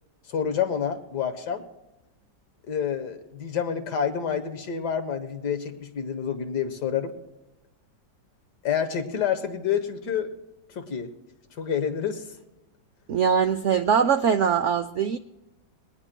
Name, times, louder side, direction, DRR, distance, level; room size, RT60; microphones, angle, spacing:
voice 1, 0.3-1.6 2.7-7.1 8.6-10.3 10.7-11.1 11.6-12.2, left 8 dB, 70° left, 7 dB, 1.7 m, -28 dB
voice 2, 13.1-15.2, right 7 dB, 75° right, 10 dB, 0.6 m, -22 dB
22.5 x 19.0 x 2.2 m, 0.99 s
omnidirectional pair, 1.9 m